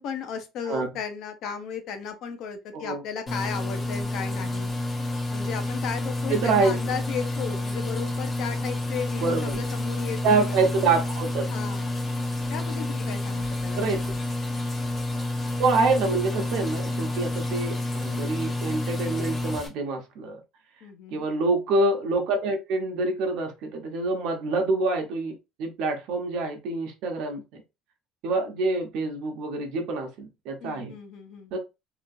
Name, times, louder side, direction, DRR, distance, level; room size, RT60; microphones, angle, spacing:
voice 1, 0.0-4.7 5.3-10.6 11.4-12.1 12.5-14.0 20.8-21.3 30.6-31.5, left 7 dB, 55° left, 0.6 m, -35 dB
sound 1, 3.3-19.7, left 2 dB, 30° left, 1.0 m, -29 dB
voice 2, 6.3-6.8 9.2-9.6 10.2-11.5 13.7-14.0 15.6-20.4 21.1-27.4 28.2-30.9 31.5-31.6, right 3 dB, 65° right, 0.8 m, -26 dB
2.9 x 2.4 x 2.5 m
cardioid pair, 155°, 0 cm